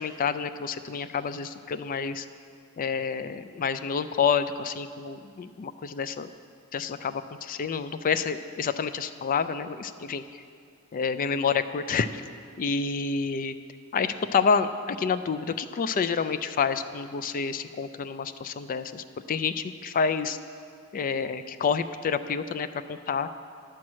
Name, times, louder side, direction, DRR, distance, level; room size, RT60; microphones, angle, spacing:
voice 1, 0.0-2.3 2.8-6.3 6.7-10.2 10.9-12.2 12.6-13.6 13.9-20.4 20.9-23.3, left 6 dB, 40° left, 11 dB, 0.3 m, -28 dB
10.5 x 4.6 x 7.4 m, 2.4 s
head